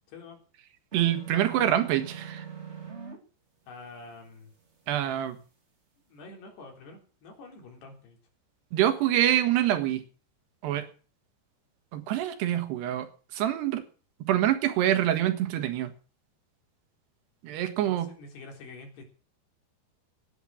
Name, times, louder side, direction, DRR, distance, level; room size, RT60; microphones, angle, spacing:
sound 1, 0.9-3.2, right 7 dB, 25° right, 1.4 m, -41 dB
voice 1, 0.9-2.5 4.9-5.4 8.7-10.0 10.6-10.9 11.9-13.1 13.3-13.8 14.2-15.9 17.4-18.1, right 12 dB, 75° right, 9 dB, 3.6 m, -25 dB
voice 2, 3.7-4.5 6.1-8.2 17.8-19.1, left 3 dB, 70° left, 2 dB, 5.8 m, -47 dB
17.5 x 10.0 x 6.3 m, 0.39 s
omnidirectional pair, 5.0 m